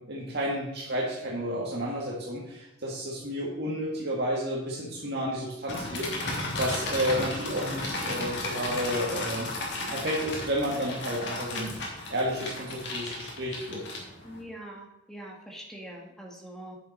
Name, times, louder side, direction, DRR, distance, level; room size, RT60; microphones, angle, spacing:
voice 1, 0.0-9.5 9.9-13.8, equal, 60° right, -4 dB, 1.9 m, -31 dB
sound 1, 5.7-14.4, left 2 dB, 65° left, 2.4 m, -34 dB
voice 2, 14.2-16.8, right 1 dB, 5° left, -1 dB, 1.9 m, -43 dB
9.8 x 7.5 x 4.2 m, 0.89 s
head